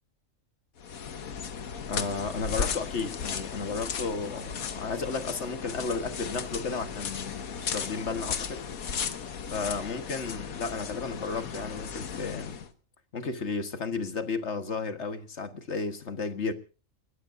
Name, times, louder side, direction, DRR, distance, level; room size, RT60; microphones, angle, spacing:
sound 1, 0.8-12.7, left 6 dB, 85° left, 1.6 m, -36 dB
voice 1, 1.9-8.6 9.5-12.6 13.1-16.5, left 4 dB, 55° left, 1.7 m, -33 dB
29.5 x 13.5 x 2.6 m
omnidirectional pair, 1.4 m